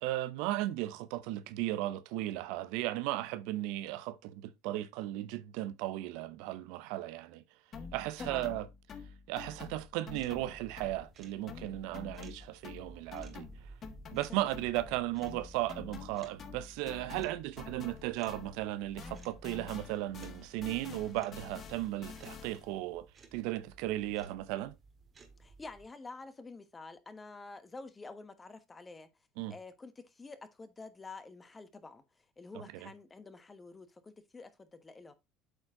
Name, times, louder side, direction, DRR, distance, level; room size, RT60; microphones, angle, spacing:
voice 1, 0.0-7.4 7.9-8.7 9.3-13.5 14.1-23.1 23.3-24.7 29.4-29.5 32.5-32.9, right 15 dB, 75° right, 0.6 m, -36 dB
sound 1, 7.7-11.2 11.5-18.7 19.0-22.8, left 5 dB, 45° left, 1.4 m, -48 dB
sound 2, 10.1-25.9, right 4 dB, 35° right, 1.7 m, -57 dB
voice 2, 25.4-29.1 29.5-32.0 32.4-35.1, left 3 dB, 20° left, 1.2 m, -48 dB
8.2 x 4.4 x 3.6 m
supercardioid pair, 90°, 0 cm